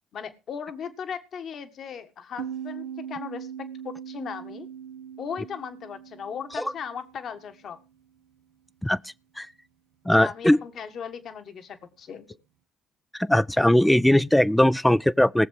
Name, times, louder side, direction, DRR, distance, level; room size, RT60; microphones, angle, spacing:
voice 1, 0.1-4.7 5.2-7.8 10.0-12.4, left 7 dB, 55° left, 1.6 m, -37 dB
sound 1, 2.4-7.7, right 8 dB, 70° right, 1.0 m, -40 dB
voice 2, 10.1-10.6 13.1-15.5, left 1 dB, 5° left, 0.5 m, -20 dB
19.0 x 7.3 x 4.8 m
hypercardioid pair, 50°, 0 cm